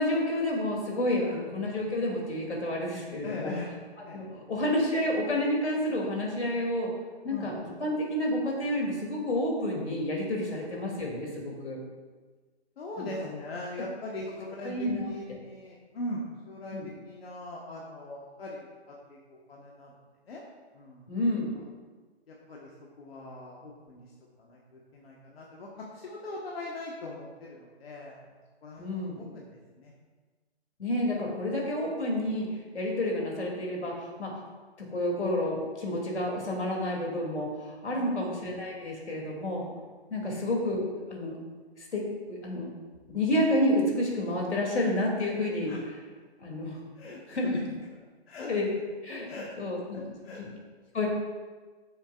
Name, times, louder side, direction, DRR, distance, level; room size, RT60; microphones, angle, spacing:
voice 1, 0.0-3.5 4.0-6.9 7.2-7.5 7.8-11.8 13.0-13.3 14.6-15.1 16.7-16.9 21.1-21.5 28.8-29.2 30.8-34.3 34.8-39.6 40.1-41.4 41.8-42.7 43.1-45.7 46.4-46.8 47.3-47.7 48.5-48.7 49.0-49.3 49.6-50.5 50.9-51.1, left 1 dB, 90° left, -1 dB, 3.0 m, -30 dB
voice 2, 3.2-3.7 4.1-4.2 7.3-7.6 10.5-10.7 12.8-14.7 15.1-16.8 17.0-18.7 19.1-19.9 20.3-20.4 20.7-21.0 22.3-22.7 23.0-24.1 24.4-28.2 28.6-29.9 37.9-38.2 40.2-40.5 45.6-45.8 47.0-47.6 48.3-48.5 49.3-49.5 49.9-50.4, left 2 dB, 65° left, -3 dB, 1.5 m, -41 dB
14.5 x 7.2 x 2.5 m, 1.4 s
hypercardioid pair, 155°, 33 cm